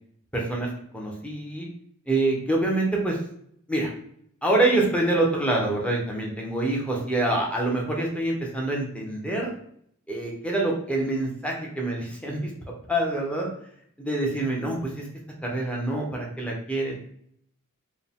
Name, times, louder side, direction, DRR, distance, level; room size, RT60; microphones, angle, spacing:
voice 1, 0.3-0.7 0.9-1.7 2.1-3.2 3.7-3.9 4.4-9.5 10.1-12.5 12.9-13.5 14.0-15.0 15.4-16.9, right 2 dB, 5° left, -1 dB, 0.9 m, -26 dB
4.7 x 2.2 x 3.5 m, 0.67 s
head